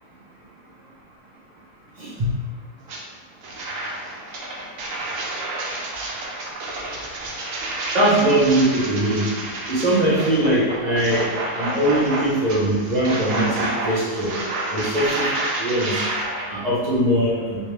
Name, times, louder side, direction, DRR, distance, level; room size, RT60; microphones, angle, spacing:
voice 1, 2.0-2.3 7.9-9.3 9.7-11.2 11.5-14.3 14.7-16.0 16.5-17.6, right 1 dB, 35° right, -7 dB, 1.0 m, -21 dB
sound 1, 2.9-3.0 3.4-16.5, right 2 dB, 75° right, 1.1 m, -29 dB
3.1 x 3.1 x 3.3 m, 1.4 s
omnidirectional pair, 1.4 m